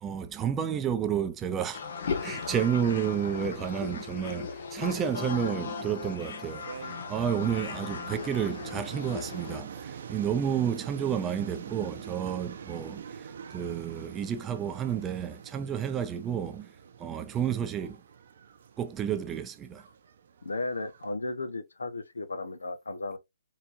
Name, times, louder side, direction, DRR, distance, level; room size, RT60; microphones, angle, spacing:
voice 1, 0.0-1.8 2.2-16.7 17.0-18.0 18.8-19.8, right 8 dB, 15° right, 0.5 m, -31 dB
sound 1, 1.7-9.6, left 5 dB, 55° left, 1.1 m, -37 dB
sound 2, 6.5-21.1, right 7 dB, 55° right, 0.6 m, -45 dB
voice 2, 20.4-23.2, left 2 dB, 80° left, 0.9 m, -35 dB
4.3 x 3.8 x 2.5 m
figure-of-eight pair, 140°, 0 cm